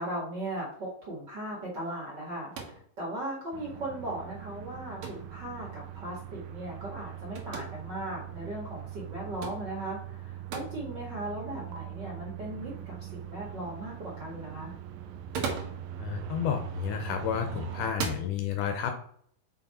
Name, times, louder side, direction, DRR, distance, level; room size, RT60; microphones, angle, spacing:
voice 1, 0.0-14.7, right 1 dB, 40° right, -3 dB, 1.7 m, -38 dB
sound 1, 2.5-2.9 5.0-5.3 7.4-7.7 9.4-9.6 10.5-10.7 11.7-11.8 15.1-15.8 17.0-17.3 17.9-18.3, right 5 dB, 65° right, 2.1 m, -35 dB
sound 2, 3.5-17.9, right 11 dB, 80° right, 2.2 m, -42 dB
voice 2, 16.0-18.9, left 8 dB, 75° left, 6 dB, 2.1 m, -31 dB
5.8 x 4.6 x 4.2 m, 0.62 s
omnidirectional pair, 4.0 m